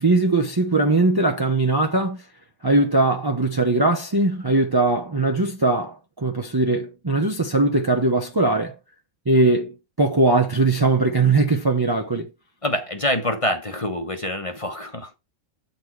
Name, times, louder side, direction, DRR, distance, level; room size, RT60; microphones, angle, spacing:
voice 1, 0.0-2.2 2.6-8.7 9.3-12.3, right 2 dB, 20° right, 0.6 m, -20 dB
voice 2, 12.6-15.2, left 1 dB, 25° left, 1.0 m, -26 dB
8.3 x 4.2 x 4.6 m
omnidirectional pair, 1.4 m